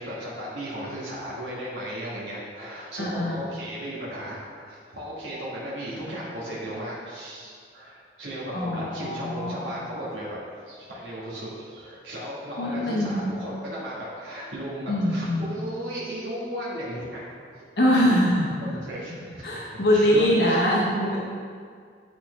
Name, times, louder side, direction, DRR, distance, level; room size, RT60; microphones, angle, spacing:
voice 1, 0.0-10.4 10.7-17.3 17.9-18.0 18.6-20.6, equal, 85° right, -7 dB, 1.4 m, -35 dB
voice 2, 3.0-3.4 8.5-9.8 12.6-13.4 14.9-15.5 17.8-18.8 19.4-21.2, equal, 65° left, -4 dB, 0.9 m, -23 dB
8.4 x 4.2 x 3.2 m, 2.1 s
head